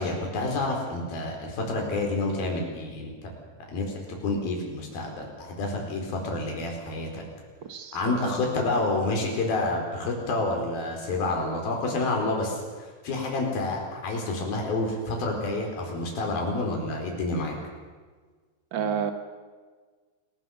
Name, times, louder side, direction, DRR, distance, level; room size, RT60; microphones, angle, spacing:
voice 1, 0.0-3.1 3.7-3.8 4.2-7.2 7.9-12.6 13.0-17.6, left 2 dB, 75° left, 1 dB, 6.3 m, -28 dB
voice 2, 7.6-8.4 18.7-19.1, right 7 dB, 70° right, 7 dB, 1.1 m, -31 dB
28.5 x 18.5 x 7.3 m, 1.5 s
omnidirectional pair, 4.2 m